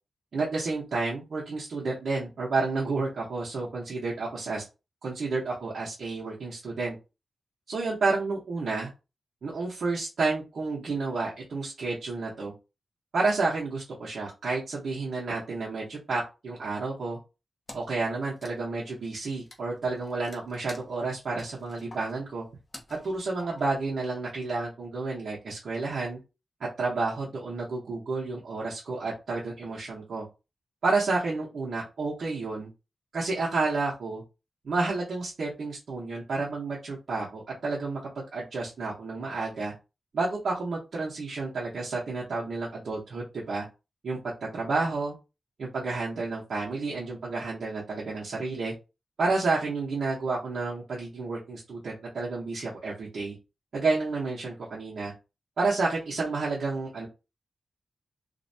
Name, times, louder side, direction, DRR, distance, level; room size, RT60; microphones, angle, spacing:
voice 1, 0.3-4.6 5.0-6.9 7.7-8.9 9.4-12.5 13.1-17.2 17.7-22.4 23.0-26.2 26.8-30.2 30.8-32.7 33.1-34.2 34.6-39.7 40.1-43.7 44.0-44.2 44.5-45.1 45.6-48.7 49.2-53.3 53.7-55.1 55.6-57.1, right 3 dB, 65° right, -5 dB, 0.8 m, -30 dB
Wood, 17.7-18.0 18.3-23.9, left 2 dB, 35° left, 0.5 m, -49 dB
2.5 x 2.1 x 2.6 m, 0.29 s
wide cardioid pair, 145°, 0 cm